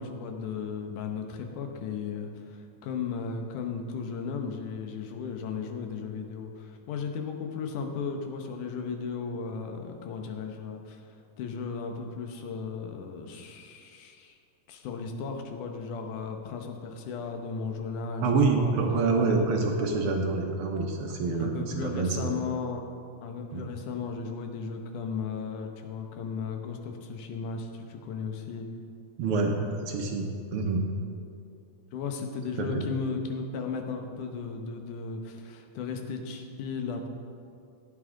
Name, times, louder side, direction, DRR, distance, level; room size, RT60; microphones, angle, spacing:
voice 1, 0.0-11.0 11.4-14.4 14.7-18.3 18.6-18.7 19.6-19.7 21.3-22.8 23.2-28.7 31.9-37.1, left 5 dB, 85° left, 4 dB, 2.5 m, -35 dB
voice 2, 18.2-22.3 23.5-23.6 29.2-30.9 32.6-32.9, right 3 dB, 70° right, 2 dB, 1.3 m, -27 dB
15.5 x 8.8 x 3.8 m, 2.4 s
omnidirectional pair, 3.5 m